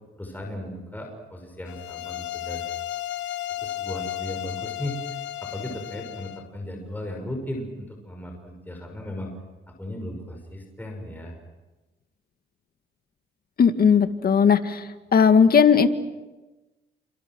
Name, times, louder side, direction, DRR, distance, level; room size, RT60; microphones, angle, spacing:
voice 1, 0.2-2.6 3.6-5.1 5.4-9.3 9.7-11.4, left 1 dB, 10° left, 1 dB, 6.4 m, -36 dB
sound 1, 1.7-6.5, left 13 dB, 80° left, 1.1 m, -34 dB
voice 2, 13.6-14.8 15.1-15.9, left 6 dB, 50° left, 8 dB, 2.1 m, -17 dB
29.5 x 27.0 x 6.3 m, 1.1 s
cardioid pair, 90°, 20 cm